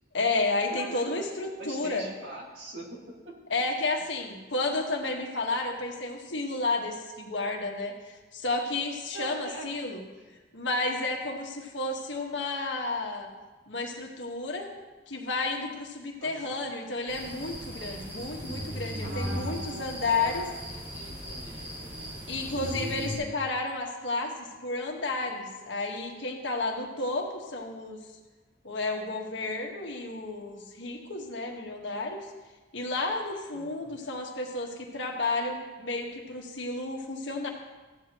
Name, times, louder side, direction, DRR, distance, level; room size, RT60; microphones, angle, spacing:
voice 1, 0.1-2.1 3.5-10.0 10.5-13.3 13.7-14.7 15.1-20.4 22.3-28.0 28.6-32.2 32.7-37.5, left 3 dB, 70° left, 1 dB, 1.5 m, -32 dB
voice 2, 0.7-1.3 1.6-3.0 3.2-3.4 4.0-4.1 9.1-9.7 10.2-10.3 16.2-16.7 19.0-22.2 33.5-34.0, right 2 dB, 65° right, -1 dB, 2.0 m, -43 dB
sound 1, 17.1-23.2, equal, 30° right, 3.3 m, -37 dB
14.5 x 9.4 x 3.0 m, 1.3 s
head